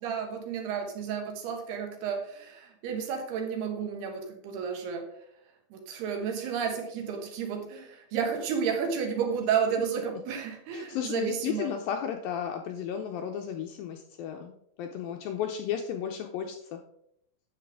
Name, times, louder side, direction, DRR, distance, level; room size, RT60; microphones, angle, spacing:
voice 1, 0.0-5.1 5.7-11.7, right 7 dB, 75° right, 3 dB, 3.3 m, -32 dB
voice 2, 10.7-16.8, left 8 dB, 85° left, 4 dB, 2.1 m, -34 dB
9.4 x 7.7 x 3.6 m, 0.73 s
omnidirectional pair, 4.7 m